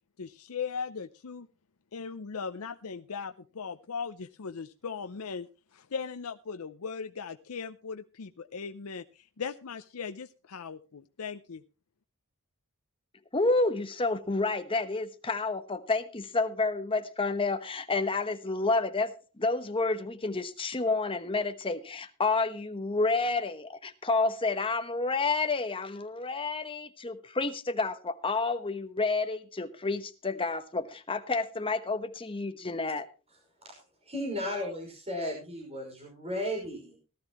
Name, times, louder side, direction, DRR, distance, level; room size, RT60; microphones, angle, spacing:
voice 1, 0.2-1.5 1.9-11.6, left 5 dB, 70° left, 9 dB, 0.6 m, -38 dB
voice 2, 13.3-33.1, left 3 dB, 25° left, 8 dB, 1.2 m, -30 dB
voice 3, 33.6-37.0, left 1 dB, 30° right, 0 dB, 5.7 m, -35 dB
18.0 x 12.5 x 3.0 m, 0.33 s
head